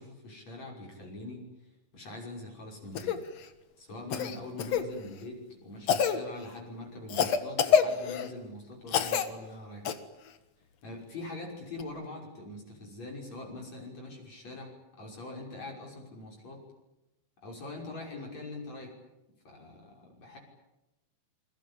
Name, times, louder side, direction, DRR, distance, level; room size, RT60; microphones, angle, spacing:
voice 1, 0.0-1.5 1.9-3.2 3.8-9.9 10.8-16.6 17.4-19.0 19.4-20.4, left 2 dB, 35° left, 1 dB, 6.8 m, -43 dB
Cough, 2.9-3.2 4.1-4.8 5.9-6.2 7.1-8.3 8.9-9.3 9.8-9.9 11.8-11.9, left 7 dB, 70° left, 1.5 m, -26 dB
28.0 x 23.5 x 8.6 m, 0.98 s
omnidirectional pair, 5.5 m